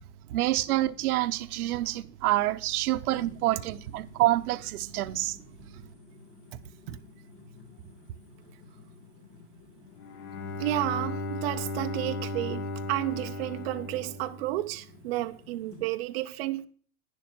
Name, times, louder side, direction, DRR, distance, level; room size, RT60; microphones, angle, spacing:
voice 1, 0.3-5.4, right 15 dB, 80° right, 0.8 m, -27 dB
sound 1, 3.1-15.9, left 2 dB, 30° left, 3.4 m, -53 dB
Bowed string instrument, 10.0-15.0, left 2 dB, 80° left, 1.8 m, -36 dB
voice 2, 10.6-16.7, right 16 dB, 45° right, 0.6 m, -32 dB
11.5 x 10.0 x 3.0 m
supercardioid pair, 175°, 44 cm